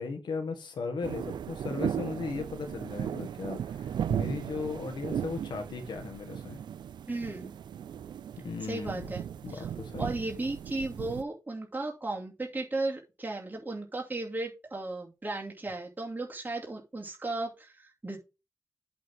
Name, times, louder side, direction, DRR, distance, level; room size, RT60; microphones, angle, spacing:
voice 1, 0.0-6.6 8.4-9.1 9.4-10.1, left 4 dB, 85° left, 1.6 m, -37 dB
sound 1, 1.0-11.2, right 9 dB, 85° right, 0.4 m, -36 dB
voice 2, 7.1-7.5 8.7-9.2 9.5-9.7 10.0-18.2, right 2 dB, 25° right, 2.5 m, -35 dB
8.3 x 3.6 x 6.2 m
cardioid pair, 40°, 7 cm